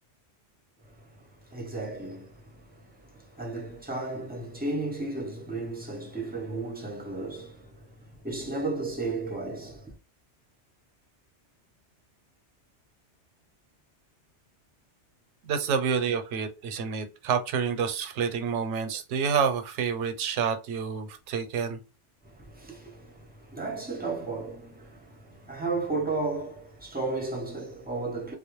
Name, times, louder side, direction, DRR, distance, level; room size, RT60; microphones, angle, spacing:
voice 1, 1.5-9.9 22.2-28.3, right 3 dB, 15° right, 0.4 m, -34 dB
voice 2, 15.5-21.8, right 6 dB, 85° right, 0.9 m, -28 dB
2.2 x 2.0 x 2.9 m
omnidirectional pair, 1.2 m